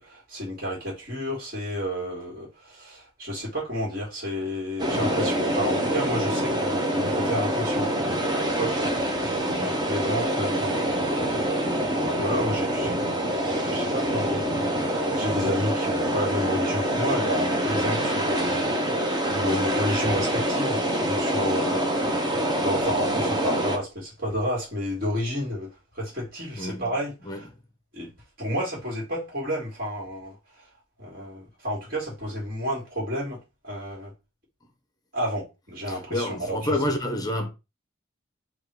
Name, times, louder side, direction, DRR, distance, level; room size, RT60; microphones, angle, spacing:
voice 1, 0.0-7.9 8.5-9.4 9.6-14.5 15.1-22.1 22.6-27.5 27.9-28.1 28.4-30.4 31.0-33.4 33.6-34.1 35.1-36.8, equal, 45° right, 1.7 m, -31 dB
sound 1, 4.8-23.8, right 1 dB, 20° right, 0.6 m, -25 dB
voice 2, 9.4-9.8 19.4-19.7 21.4-21.9 26.6-26.9 27.2-27.5 34.6-34.7 35.8-37.5, left 1 dB, 20° left, 0.7 m, -30 dB
3.6 x 2.4 x 4.5 m
head